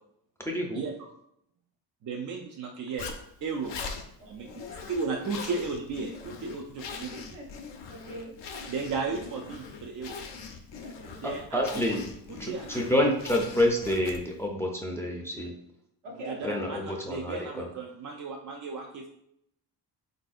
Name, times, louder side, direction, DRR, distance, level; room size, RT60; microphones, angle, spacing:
voice 1, 0.5-0.9 11.2-12.0 12.4-15.5 16.4-17.7, left 1 dB, 5° left, 0 dB, 0.5 m, -28 dB
voice 2, 2.0-3.1 3.4-3.8 4.3-7.1 8.7-10.2 11.2-11.6 11.9-12.0 12.3-12.9 16.2-19.1, right 4 dB, 45° right, 1 dB, 0.4 m, -35 dB
Zipper (clothing), 3.0-14.4, left 5 dB, 70° left, 0.6 m, -42 dB
voice 3, 4.4-4.9 6.9-7.5 7.9-8.6 10.8-11.2 16.0-16.7, equal, 75° right, -1 dB, 1.0 m, -43 dB
3.4 x 2.6 x 2.4 m, 0.74 s
cardioid pair, 70°, 44 cm